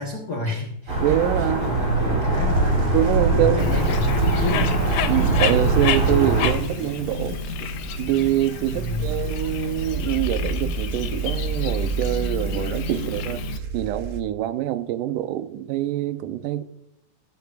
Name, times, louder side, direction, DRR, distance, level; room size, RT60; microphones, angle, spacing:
voice 1, 0.0-1.0 1.4-3.0 3.3-4.8 8.7-9.2, left 3 dB, 60° left, 0 dB, 1.0 m, -30 dB
sound 1, 0.9-6.5, right 2 dB, 45° right, 5.5 m, -21 dB
voice 2, 1.0-1.7 2.1-2.3 2.9-3.8 5.1-7.4 8.0-16.6, right 12 dB, 85° right, 10 dB, 2.2 m, -25 dB
sound 2, 2.3-14.2, right 3 dB, 65° right, 1.2 m, -31 dB
Bird, 3.6-13.6, left 9 dB, 90° left, 1.4 m, -31 dB
15.5 x 9.2 x 2.4 m, 0.77 s
omnidirectional pair, 3.7 m